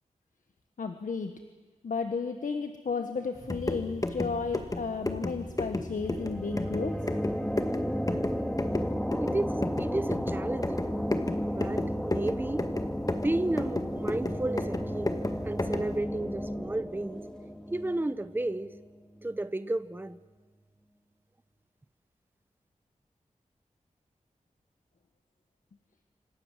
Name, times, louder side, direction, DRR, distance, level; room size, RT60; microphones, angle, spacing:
voice 1, 0.8-1.4 1.8-7.0, left 5 dB, 80° left, 7 dB, 1.6 m, -33 dB
sound 1, 3.4-16.0, left 2 dB, 25° left, 2.0 m, -34 dB
sound 2, 5.9-19.3, equal, 5° left, 2.2 m, -33 dB
voice 2, 9.2-10.9 11.5-12.6 13.2-15.1 15.4-17.3 17.7-18.7 19.2-20.2, right 2 dB, 15° right, 13 dB, 0.9 m, -32 dB
27.0 x 26.5 x 7.6 m, 1.4 s
wide cardioid pair, 90°, 13 cm